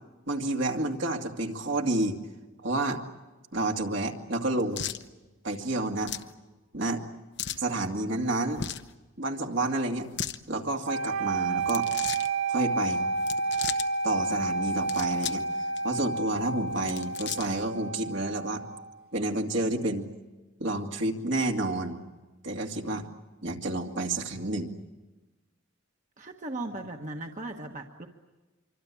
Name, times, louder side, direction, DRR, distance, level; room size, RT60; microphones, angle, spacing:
voice 1, 0.3-2.2 2.6-3.0 3.5-4.9 5.4-6.1 6.7-7.0 7.6-8.7 9.2-10.1 10.5-11.9 12.5-13.1 14.0-15.4 15.8-18.6 19.1-20.1 20.6-22.0 22.4-23.1 23.4-24.7, right 2 dB, 65° right, 2 dB, 2.4 m, -29 dB
sound 1, 4.7-5.0 6.0-6.3 7.4-7.7 8.5-8.9 10.0-10.4 11.6-12.3 13.2-13.9 14.7-15.5 15.8-15.9 16.7-17.6, left 9 dB, 60° left, 0.9 m, -36 dB
sound 2, 10.8-18.9, right 3 dB, 85° right, 3.9 m, -30 dB
voice 2, 26.2-28.1, right 2 dB, 40° right, 3 dB, 1.4 m, -37 dB
26.0 x 24.5 x 8.6 m, 1.2 s
head